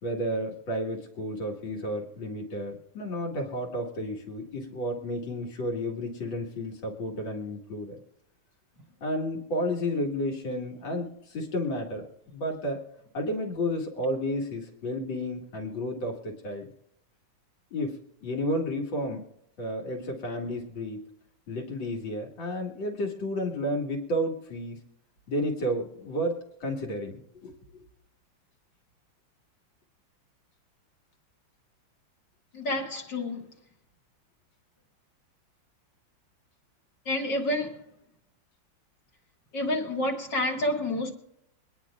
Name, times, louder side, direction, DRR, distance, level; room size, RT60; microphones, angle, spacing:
voice 1, 0.0-8.0 9.0-12.8 13.1-16.7 17.7-18.0 18.2-19.2 19.6-21.0 21.5-24.8 25.3-27.8, equal, 85° left, 2.6 m, -32 dB
voice 2, 32.5-33.4 37.1-37.8 39.5-41.1, left 1 dB, 70° left, 2.6 m, -29 dB
24.0 x 10.5 x 2.4 m
omnidirectional pair, 2.0 m